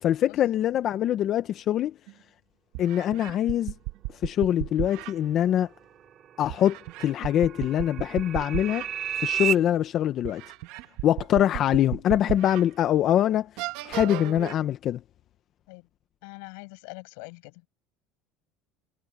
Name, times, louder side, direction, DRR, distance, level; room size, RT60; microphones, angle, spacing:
voice 1, 0.0-1.9 2.8-3.7 4.2-5.7 6.4-8.8 9.2-10.4 11.0-13.5 13.8-15.0, left 11 dB, 45° left, 0.8 m, -24 dB
sound 1, 2.1-2.2 2.7-5.1 6.5-8.9 9.3-9.5 10.2-12.6 13.1-13.2 13.6-14.5, right 19 dB, 75° right, 1.7 m, -35 dB
sound 2, 5.2-9.5, right 9 dB, 40° right, 2.9 m, -33 dB
voice 2, 16.2-17.6, left 35 dB, 80° left, 6.8 m, -43 dB
cardioid pair, 140°, 0 cm